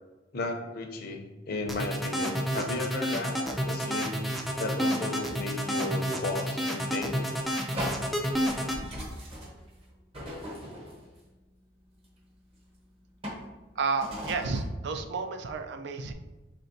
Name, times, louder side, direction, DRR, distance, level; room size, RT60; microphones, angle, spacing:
voice 1, 0.3-4.1 4.6-7.3, left 2 dB, 55° left, 3 dB, 0.6 m, -34 dB
sound 1, 1.7-8.8, equal, ahead, 0.4 m, -30 dB
sound 2, 7.7-11.2 12.0-12.1 13.2-13.5 14.0-14.6, equal, 35° right, 0.9 m, -38 dB
voice 2, 13.8-16.1, right 4 dB, 65° right, 6 dB, 0.4 m, -31 dB
4.3 x 3.2 x 2.6 m, 1.1 s
head